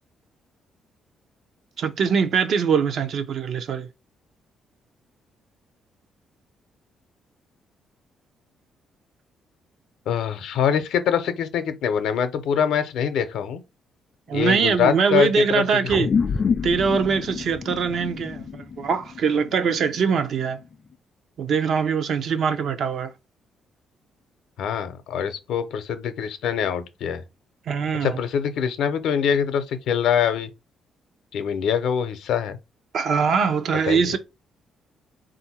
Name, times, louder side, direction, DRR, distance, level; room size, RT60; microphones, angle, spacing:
voice 1, 1.8-3.9 14.3-16.1 16.6-20.6 21.4-23.1 27.7-28.2 32.9-34.2, right 6 dB, 65° right, 0.6 m, -22 dB
voice 2, 10.1-13.6 14.3-15.6 24.6-27.2 28.0-30.5 31.3-32.6 33.9-34.1, left 8 dB, 80° left, 0.6 m, -24 dB
sound 1, 15.9-20.6, left 5 dB, 40° left, 0.4 m, -28 dB
3.8 x 2.6 x 4.2 m
cardioid pair, 90°, 0 cm